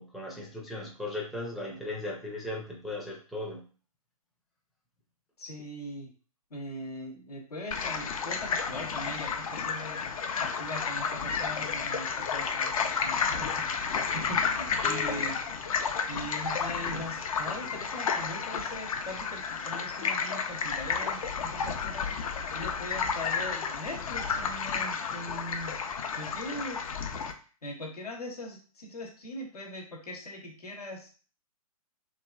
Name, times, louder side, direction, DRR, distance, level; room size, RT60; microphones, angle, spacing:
voice 1, 0.0-3.6 14.8-15.3, left 2 dB, ahead, -5 dB, 0.4 m, -37 dB
voice 2, 5.4-6.1 6.5-15.4 16.1-27.0 27.6-31.1, left 1 dB, 80° left, 0 dB, 0.9 m, -41 dB
sound 1, 7.7-27.3, left 6 dB, 65° left, 0.5 m, -32 dB
3.0 x 2.5 x 2.3 m, 0.39 s
figure-of-eight pair, 125°, 19 cm